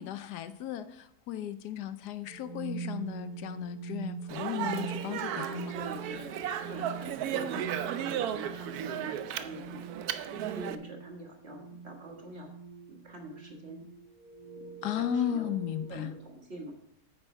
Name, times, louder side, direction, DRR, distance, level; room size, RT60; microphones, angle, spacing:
voice 1, 0.0-5.8 14.8-16.1, left 10 dB, 85° left, 12 dB, 1.3 m, -35 dB
sound 1, 2.3-15.9, right 5 dB, 25° right, 1.7 m, -44 dB
Speech, 4.3-10.8, right 9 dB, 75° right, 1.1 m, -35 dB
voice 2, 5.7-7.6 7.9-10.0 10.5-12.5 12.9-13.9 14.6-15.5 15.9-16.7, right 1 dB, 40° right, 1 dB, 2.0 m, -45 dB
9.0 x 8.3 x 4.5 m, 0.73 s
omnidirectional pair, 1.7 m